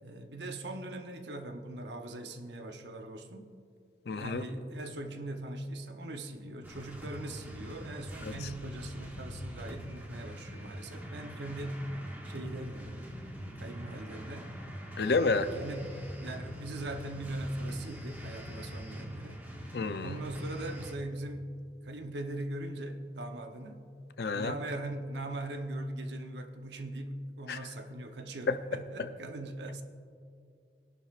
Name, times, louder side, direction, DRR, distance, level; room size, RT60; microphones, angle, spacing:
voice 1, 0.0-3.5 4.1-11.8 12.2-13.1 13.4-14.6 15.3-19.5 20.0-21.5 21.8-23.9 24.3-29.8, right 1 dB, 80° right, 6 dB, 0.9 m, -40 dB
voice 2, 4.1-4.4 15.0-15.5 19.7-20.1 24.2-24.5 27.5-27.6 28.5-28.6, left 4 dB, 65° left, 10 dB, 0.6 m, -29 dB
sound 1, 6.6-20.9, equal, 10° right, 1.1 m, -43 dB
20.5 x 11.0 x 2.5 m, 2.4 s
head